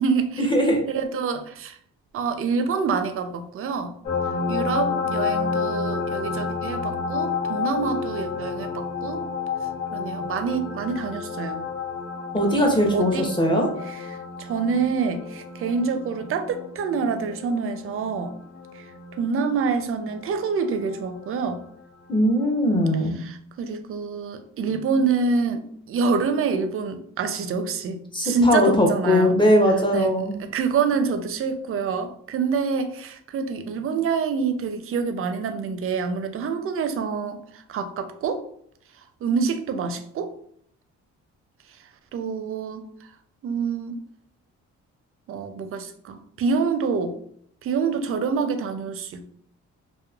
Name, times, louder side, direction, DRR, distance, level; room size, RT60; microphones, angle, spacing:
voice 1, 0.0-0.5 0.9-1.8 2.1-3.9 4.5-9.2 9.9-11.6 12.9-13.3 13.8-18.3 18.8-18.9 19.2-21.6 23.2-29.4 29.9-38.4 39.2-40.3 42.1-42.9 43.4-44.0 45.3-47.2 47.6-49.3, right 5 dB, 45° right, 7 dB, 0.4 m, -26 dB
voice 2, 0.5-0.8 12.3-13.7 22.1-23.2 28.1-30.3, equal, 15° left, 1 dB, 0.7 m, -20 dB
sound 1, 4.0-21.3 22.8-22.9, left 5 dB, 80° left, 0.9 m, -30 dB
2.9 x 2.1 x 2.3 m, 0.64 s
cardioid pair, 90°, 30 cm